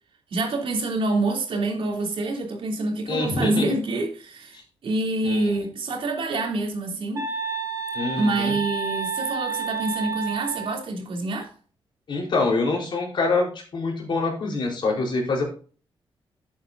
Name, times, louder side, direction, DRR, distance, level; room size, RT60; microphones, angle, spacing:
voice 1, 0.3-7.3 8.1-11.5, right 2 dB, 70° right, 3.2 m, -26 dB
voice 2, 3.1-3.6 5.2-5.5 7.9-8.5 12.1-15.4, left 3 dB, 55° left, 4.3 m, -25 dB
sound 1, 7.2-10.8, right 6 dB, 30° right, 3.5 m, -30 dB
12.0 x 8.4 x 2.7 m
wide cardioid pair, 135°, 10 cm